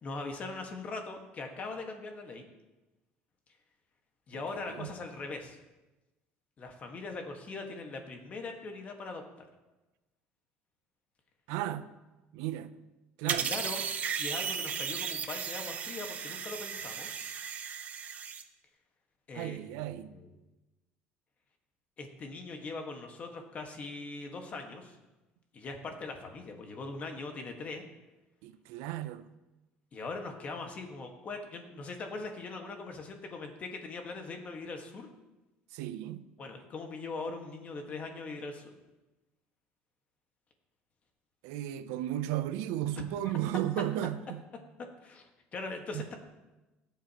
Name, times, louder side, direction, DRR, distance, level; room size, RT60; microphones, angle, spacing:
voice 1, 0.0-2.5 4.3-5.6 6.6-9.5 13.2-13.8 14.2-17.1 19.3-19.6 20.1-20.3 22.0-25.0 25.5-27.8 29.9-35.1 36.4-38.7 43.2-43.3 45.0-46.2, left 3 dB, 35° left, 1.5 m, -41 dB
voice 2, 11.5-11.9 12.3-12.7 13.2-13.5 19.3-20.1 28.4-29.3 35.7-36.3 41.4-44.4 45.9-46.1, right 12 dB, 90° right, 0.5 m, -34 dB
sound 1, 13.3-18.4, right 7 dB, 35° right, 0.7 m, -35 dB
17.5 x 7.4 x 2.9 m
cardioid pair, 135°, 4 cm